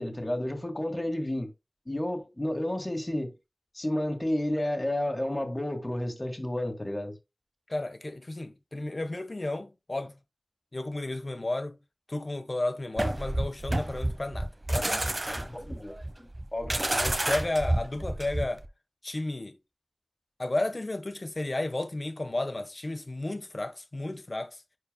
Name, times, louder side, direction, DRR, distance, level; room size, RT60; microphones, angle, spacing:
voice 1, 0.0-1.5 1.9-3.3 3.7-7.2 15.5-15.9 16.5-16.8, left 1 dB, 30° left, 1.8 m, -31 dB
voice 2, 7.7-10.2 10.7-11.8 12.1-15.5 16.7-18.6 19.0-19.6 20.4-24.6, left 2 dB, 55° left, 1.2 m, -33 dB
sound 1, 13.0-18.7, right 1 dB, 40° right, 1.0 m, -30 dB
10.5 x 4.5 x 2.2 m
wide cardioid pair, 60°, 0 cm